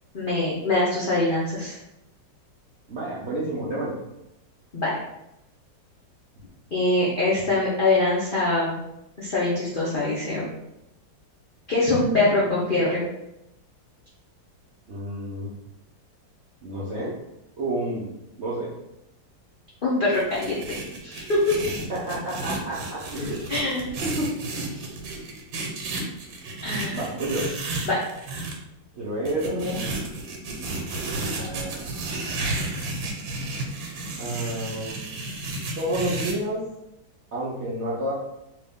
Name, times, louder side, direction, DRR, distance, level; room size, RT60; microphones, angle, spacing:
voice 1, 0.1-1.8 4.7-5.0 6.7-8.7 9.2-10.5 11.7-13.0 19.8-20.8 21.0-21.6 23.5-23.9 26.6-27.0 27.9-28.0, left 2 dB, 65° left, -7 dB, 0.5 m, -23 dB
voice 2, 2.9-3.9 14.9-15.5 16.6-17.2 17.6-18.1 18.4-18.7 21.9-23.4 24.0-24.9 26.9-27.5 28.9-29.8 31.1-31.9 34.2-35.2 35.8-36.7 37.3-38.1, right 1 dB, 65° right, -7 dB, 0.7 m, -30 dB
sound 1, 20.1-28.5 29.3-36.3, right 2 dB, 85° right, 1.5 m, -32 dB
3.1 x 2.9 x 3.5 m, 0.87 s
omnidirectional pair, 2.0 m